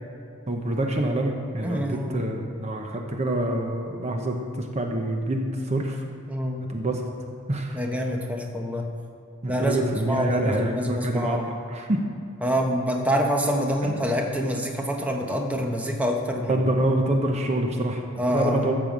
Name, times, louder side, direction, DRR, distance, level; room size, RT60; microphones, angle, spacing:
voice 1, 0.5-6.0 6.7-7.0 7.5-7.8 9.4-12.0 13.8-14.0 16.5-18.7, right 1 dB, 30° right, 2 dB, 0.9 m, -26 dB
voice 2, 1.6-2.2 6.3-6.6 7.7-8.9 9.5-11.4 12.4-16.5 18.2-18.7, equal, 5° right, 1 dB, 1.0 m, -26 dB
13.5 x 5.6 x 7.5 m, 2.4 s
head